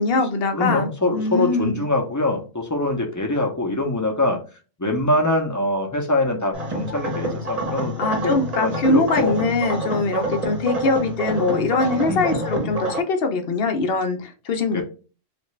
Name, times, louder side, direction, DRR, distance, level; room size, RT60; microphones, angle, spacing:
voice 1, 0.0-1.8 8.0-14.8, left 3 dB, 55° left, 5 dB, 0.9 m, -22 dB
voice 2, 0.5-4.4 4.8-7.9 8.2-9.4 12.1-12.3 14.7-14.8, left 2 dB, 20° left, 2 dB, 0.7 m, -23 dB
sound 1, 6.5-13.0, right 1 dB, 35° right, 1.0 m, -27 dB
3.3 x 2.5 x 3.1 m, 0.34 s
omnidirectional pair, 1.2 m